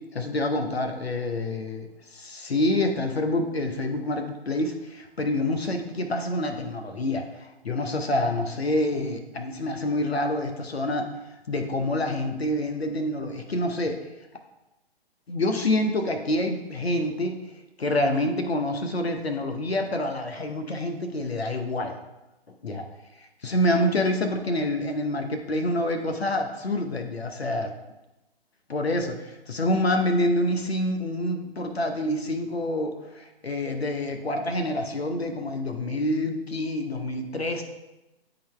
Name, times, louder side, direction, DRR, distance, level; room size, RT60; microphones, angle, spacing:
voice 1, 0.1-11.1 11.5-14.1 15.3-17.4 17.8-22.0 22.5-22.8 23.4-27.7 28.7-37.6, left 1 dB, 75° left, 5 dB, 1.0 m, -27 dB
10.0 x 3.9 x 3.4 m, 0.99 s
figure-of-eight pair, 130°, 31 cm